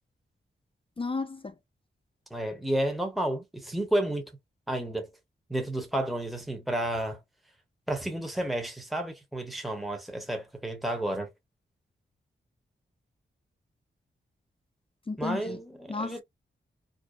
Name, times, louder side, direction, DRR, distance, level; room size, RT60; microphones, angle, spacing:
voice 1, 1.0-1.5 15.1-15.6 15.9-16.2, left 3 dB, 25° left, 0.5 m, -33 dB
voice 2, 2.3-4.3 4.7-5.1 5.5-7.2 7.9-11.3 15.2-16.2, right 1 dB, ahead, 0.9 m, -31 dB
2.5 x 2.2 x 2.3 m
cardioid pair, 45°, 21 cm